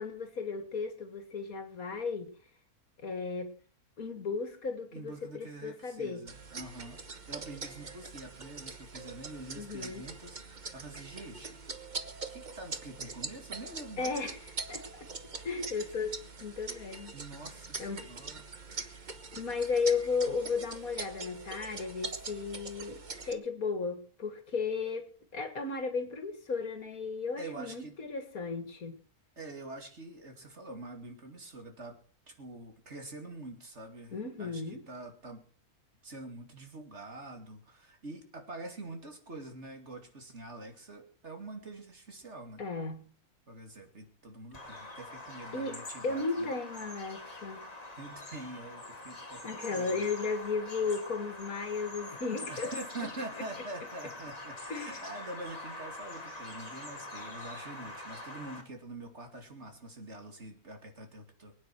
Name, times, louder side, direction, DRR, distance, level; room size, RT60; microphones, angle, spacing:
voice 1, 0.0-2.3 3.0-3.5 4.0-6.2 9.6-10.0 14.0-14.4 14.7-15.1 15.4-17.1 17.8-18.0 19.3-25.1 25.3-29.0 34.1-34.8 42.6-43.1 45.5-45.8 46.0-47.6 49.4-52.7 54.7-55.0, left 4 dB, 70° left, 8 dB, 2.5 m, -35 dB
voice 2, 4.9-7.0 7.3-11.6 12.3-14.1 17.1-18.5 27.4-28.0 29.4-32.0 32.3-35.5 36.0-42.6 43.5-46.5 47.9-50.0 52.5-61.5, right 2 dB, 50° right, 4 dB, 2.9 m, -45 dB
sound 1, 6.3-23.3, right 4 dB, 35° right, 1.2 m, -43 dB
Bird vocalization bird call bird song, 44.5-58.6, left 2 dB, 25° left, 2.4 m, -44 dB
24.0 x 9.5 x 4.7 m, 0.41 s
omnidirectional pair, 1.6 m